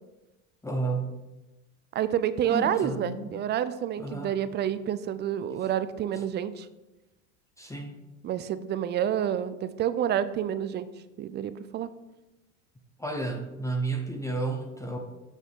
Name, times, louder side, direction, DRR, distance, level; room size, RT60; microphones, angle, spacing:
voice 1, 0.6-1.1 2.5-3.3 4.0-4.3 6.1-6.2 7.6-8.0 13.0-15.0, right 3 dB, 10° left, 3 dB, 0.7 m, -32 dB
voice 2, 1.9-6.7 8.2-10.9 11.2-11.9, right 10 dB, 30° right, 13 dB, 0.3 m, -28 dB
6.7 x 6.1 x 3.6 m, 1.0 s
supercardioid pair, 105°, 37 cm